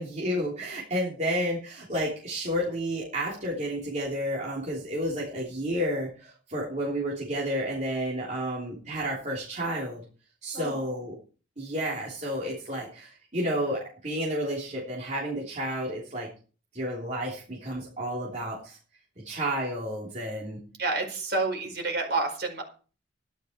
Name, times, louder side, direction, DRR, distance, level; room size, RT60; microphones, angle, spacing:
voice 1, 0.0-10.0 10.4-11.1 11.6-16.3 16.7-18.8 19.2-20.6, equal, 40° right, -4 dB, 3.3 m, -31 dB
voice 2, 10.5-10.9 20.8-22.6, right 3 dB, 60° right, 3 dB, 4.8 m, -29 dB
13.0 x 11.5 x 4.5 m, 0.38 s
head